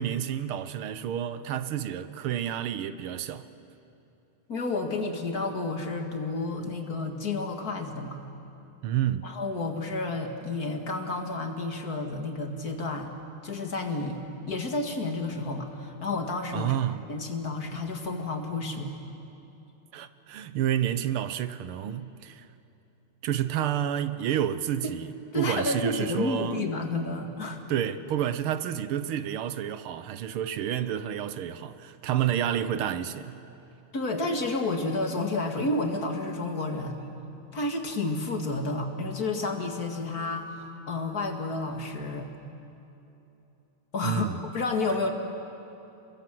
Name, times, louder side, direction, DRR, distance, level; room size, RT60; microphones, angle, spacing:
voice 1, 0.0-3.5 8.8-9.3 16.5-17.1 19.9-22.5 23.2-25.1 25.4-26.6 27.7-33.4 44.0-44.4, right 10 dB, 85° right, 1.8 m, -29 dB
voice 2, 4.5-8.2 9.2-13.1 13.4-14.2 14.5-16.7 17.1-19.0 25.3-27.6 33.9-37.1 37.5-42.3 43.9-44.3 44.5-45.1, left 2 dB, 45° left, 2.4 m, -30 dB
29.5 x 21.5 x 7.7 m
omnidirectional pair, 2.3 m